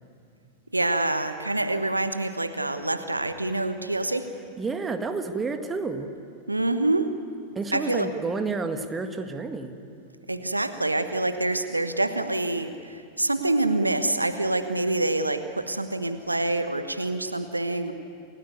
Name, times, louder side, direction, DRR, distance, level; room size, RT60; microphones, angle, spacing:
voice 1, 0.7-4.3 6.5-7.1 7.7-8.1 10.3-17.9, right 2 dB, 85° right, 10 dB, 1.1 m, -26 dB
voice 2, 4.6-6.1 7.6-9.8, right 4 dB, 15° right, 7 dB, 1.8 m, -30 dB
28.5 x 17.5 x 9.5 m, 2.5 s
figure-of-eight pair, 90°, 0 cm